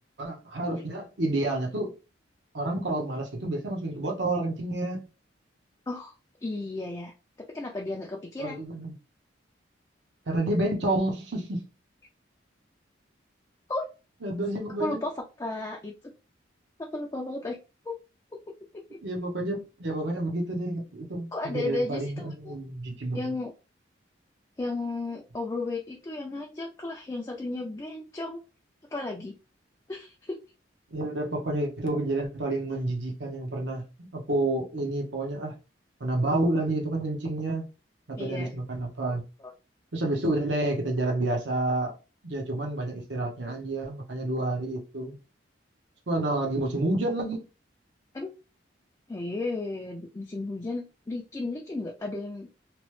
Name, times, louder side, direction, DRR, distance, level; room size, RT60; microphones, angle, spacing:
voice 1, 0.2-1.9 2.5-5.0 8.4-8.9 10.3-11.7 14.2-15.0 19.0-23.3 30.9-35.5 36.0-37.6 38.1-39.2 39.9-41.9 42.2-45.2 46.1-47.4, right 2 dB, 65° right, 0.7 m, -29 dB
voice 2, 6.4-7.1 7.5-8.6 13.7-13.9 14.8-16.1 16.8-17.6 17.9-18.0 18.9-19.0 21.3-22.5 23.1-23.5 24.6-28.4 28.9-29.3 29.9-30.4 38.2-38.5 39.4-39.5 48.1-48.3 49.1-52.5, left 2 dB, 20° left, 0.3 m, -34 dB
2.9 x 2.0 x 3.1 m
head